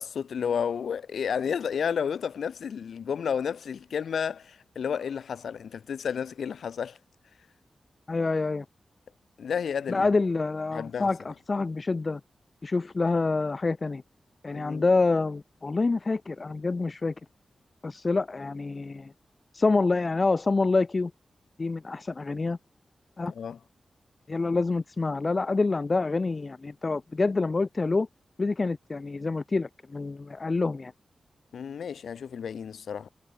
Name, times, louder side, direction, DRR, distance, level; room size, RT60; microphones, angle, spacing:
voice 1, 0.0-7.0 9.4-10.1 10.7-11.1 14.5-14.9 23.3-23.6 31.5-33.1, left 7 dB, 90° left, 3.0 m, -31 dB
voice 2, 8.1-8.6 9.9-12.2 12.6-14.0 14.4-17.1 17.8-19.1 19.5-21.1 21.6-22.6 23.2-23.3 24.3-28.1 28.4-30.9, left 3 dB, 40° left, 2.4 m, -27 dB
cardioid pair, 75°, 0 cm